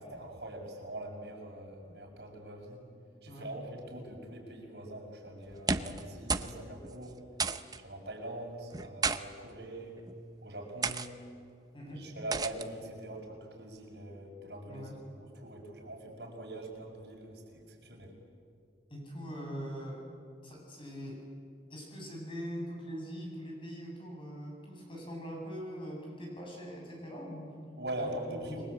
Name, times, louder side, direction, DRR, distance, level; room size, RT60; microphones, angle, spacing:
voice 1, 0.0-2.8 3.2-7.2 7.8-9.9 10.4-11.1 11.9-14.9 15.2-18.1 27.8-28.6, right 1 dB, 65° right, 0 dB, 6.7 m, -43 dB
voice 2, 3.3-3.6 11.7-12.1 14.7-15.0 18.9-20.0 20.4-21.2 21.7-27.6 28.0-28.6, equal, 30° left, -1 dB, 7.7 m, -42 dB
sound 1, 5.5-6.0 6.3-6.6 6.8-6.9 7.4-7.8 8.7-9.2 10.0-10.2 10.8-11.1 12.3-12.7, right 4 dB, 20° right, 0.8 m, -32 dB
30.0 x 22.0 x 8.7 m, 2.2 s
head